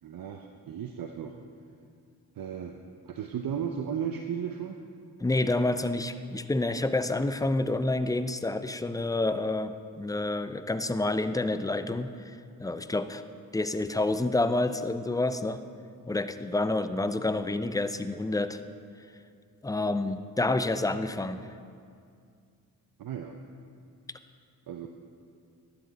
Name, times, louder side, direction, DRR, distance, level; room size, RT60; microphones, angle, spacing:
voice 1, 0.0-1.4 2.4-2.8 3.1-4.8 23.0-23.4 24.7-24.9, right 8 dB, 60° right, 4 dB, 0.7 m, -35 dB
voice 2, 5.2-12.3 12.6-13.2 13.5-15.6 16.1-18.6 19.6-21.4, left 2 dB, 10° left, 11 dB, 0.5 m, -28 dB
11.5 x 8.8 x 4.1 m, 2.3 s
supercardioid pair, 50°, 39 cm